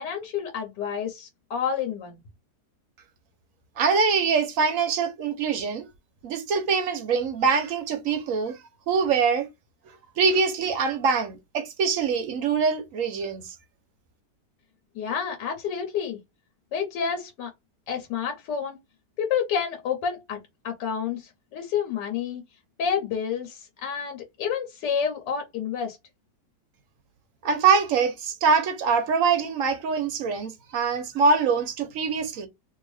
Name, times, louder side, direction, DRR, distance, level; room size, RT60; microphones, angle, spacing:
voice 1, 0.0-2.2 14.9-16.2 16.7-17.5 17.9-18.8 19.2-20.4 20.6-22.4 22.8-26.0, left 7 dB, 75° left, 1.3 m, -29 dB
voice 2, 3.8-5.9 6.2-8.6 8.9-9.5 10.2-13.5 27.4-32.5, right 5 dB, 65° right, 0.8 m, -24 dB
2.8 x 2.7 x 3.2 m
omnidirectional pair, 1.9 m